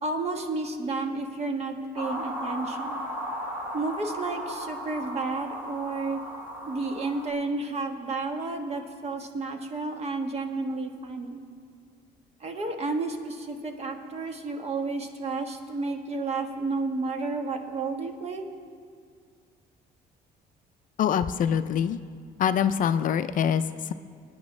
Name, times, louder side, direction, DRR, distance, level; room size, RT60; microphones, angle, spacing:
voice 1, 0.0-3.0 3.7-6.2 6.7-11.4 12.4-18.4, right 3 dB, 40° right, 5 dB, 1.3 m, -31 dB
sound 1, 2.0-7.3, equal, 15° right, 2.7 m, -36 dB
voice 2, 21.0-22.0 22.4-23.9, left 8 dB, 50° left, 11 dB, 0.4 m, -24 dB
25.5 x 9.6 x 3.2 m, 2.1 s
cardioid pair, 110°, 17 cm